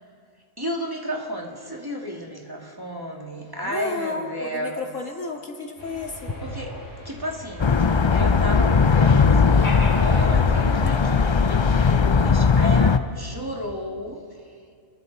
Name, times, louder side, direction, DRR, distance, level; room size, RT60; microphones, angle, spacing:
voice 1, 0.6-4.8 6.4-6.8 7.0-14.4, equal, 15° right, -1 dB, 2.4 m, -33 dB
voice 2, 3.6-6.3, left 3 dB, 90° left, 2 dB, 2.5 m, -32 dB
sound 1, 5.8-11.4, left 1 dB, 15° left, 7.0 m, -38 dB
sound 2, 7.6-13.0, left 5 dB, 40° left, 0.4 m, -18 dB
30.0 x 21.5 x 4.2 m, 2.3 s
omnidirectional pair, 1.3 m